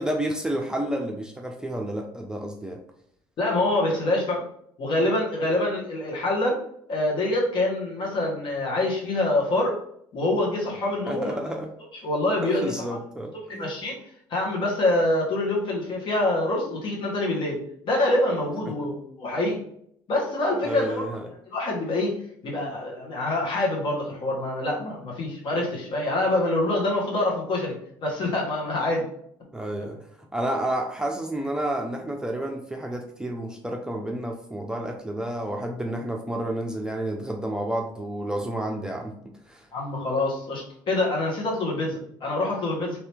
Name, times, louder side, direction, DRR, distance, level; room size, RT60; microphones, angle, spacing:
voice 1, 0.0-2.8 11.1-11.7 12.4-13.8 18.8-18.9 20.5-21.3 29.5-39.7, right 1 dB, 5° right, 1 dB, 0.5 m, -30 dB
voice 2, 3.4-4.4 4.8-6.6 6.9-9.7 10.1-11.5 12.0-12.8 13.5-14.0 14.3-19.6 20.1-21.0 21.5-22.1 22.4-29.1 29.8-29.9 39.7-43.0, left 2 dB, 55° left, -3 dB, 1.4 m, -25 dB
2.9 x 2.7 x 3.4 m, 0.69 s
supercardioid pair, 80°, 10 cm